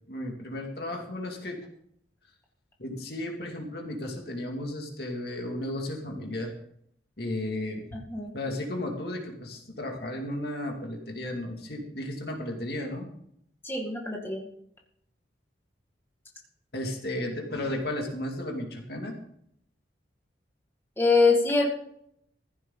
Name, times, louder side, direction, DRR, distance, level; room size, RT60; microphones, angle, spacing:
voice 1, 0.0-1.6 2.8-6.5 7.2-7.9 8.3-13.1 16.7-19.2, left 1 dB, 55° left, 1 dB, 2.4 m, -34 dB
voice 2, 7.9-8.3 13.6-14.4 21.0-21.7, left 3 dB, 10° left, -1 dB, 2.0 m, -24 dB
15.0 x 11.0 x 3.9 m, 0.69 s
head